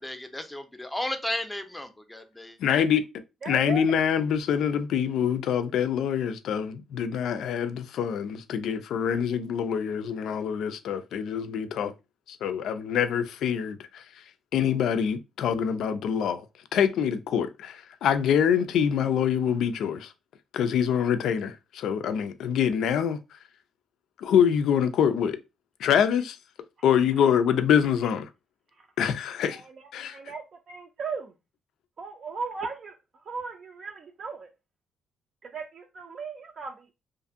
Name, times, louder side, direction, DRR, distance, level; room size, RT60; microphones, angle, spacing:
voice 1, 0.0-2.6, left 1 dB, 10° left, 0.5 m, -34 dB
voice 2, 2.6-3.0 3.5-11.9 12.3-14.0 14.5-16.4 16.7-20.1 20.5-23.2 24.2-25.4 25.8-26.4 26.8-28.3 29.0-29.6 29.9-30.2, left 8 dB, 75° left, 0.3 m, -25 dB
voice 3, 3.4-4.0 29.6-29.7 30.1-31.3 32.0-32.9 33.3-34.5 35.4-36.9, right 5 dB, 50° right, 0.4 m, -36 dB
2.5 x 2.5 x 2.5 m
cardioid pair, 90°, 0 cm